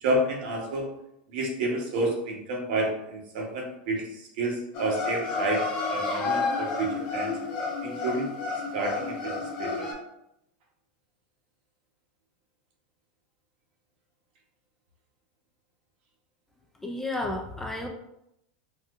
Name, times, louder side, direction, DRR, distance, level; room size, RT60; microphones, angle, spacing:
voice 1, 0.0-0.9 1.3-5.6 5.9-7.4 7.8-8.3 8.7-9.9, right 2 dB, 70° right, 0 dB, 1.0 m, -30 dB
sound 1, 4.7-9.9, left 4 dB, 45° left, 1.1 m, -30 dB
voice 2, 16.8-17.9, left 2 dB, 5° left, 2 dB, 0.4 m, -32 dB
4.1 x 2.5 x 2.4 m, 0.80 s
supercardioid pair, 135°, 5 cm